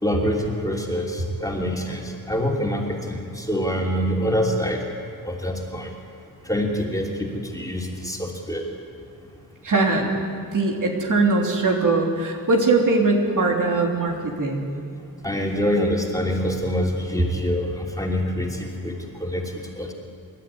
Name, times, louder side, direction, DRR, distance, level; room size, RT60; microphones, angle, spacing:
voice 1, 0.0-4.8 5.2-5.9 6.4-8.6 15.2-19.9, equal, 10° left, -1 dB, 2.9 m, -25 dB
voice 2, 9.6-10.2 10.5-14.7, right 3 dB, 60° right, 0 dB, 3.2 m, -21 dB
27.0 x 12.5 x 9.6 m, 2.3 s
wide cardioid pair, 125°, 35 cm